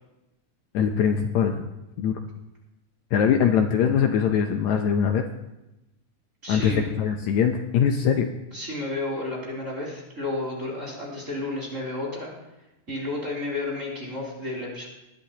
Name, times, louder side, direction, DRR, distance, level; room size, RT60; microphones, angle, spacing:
voice 1, 0.7-1.7 2.0-2.1 3.1-5.2 6.5-8.3, left 7 dB, 75° left, 5 dB, 1.9 m, -22 dB
voice 2, 6.4-6.9 8.5-12.3 12.9-14.9, left 2 dB, 25° right, -4 dB, 3.4 m, -31 dB
20.0 x 11.0 x 2.9 m, 0.95 s
omnidirectional pair, 3.6 m